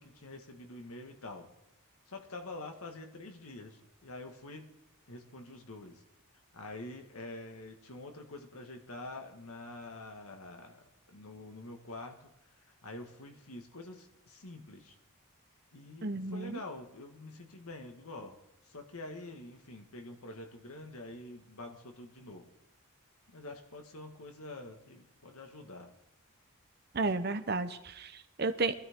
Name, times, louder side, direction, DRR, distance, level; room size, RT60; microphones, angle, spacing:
voice 1, 0.0-1.5 2.1-4.7 5.1-6.0 6.5-12.3 12.7-14.9 15.7-18.4 18.6-22.5 23.3-25.9, left 2 dB, 80° left, 4 dB, 1.7 m, -46 dB
voice 2, 16.0-16.6 26.9-28.7, right 3 dB, 45° right, 10 dB, 0.8 m, -33 dB
21.5 x 12.5 x 3.7 m, 0.88 s
head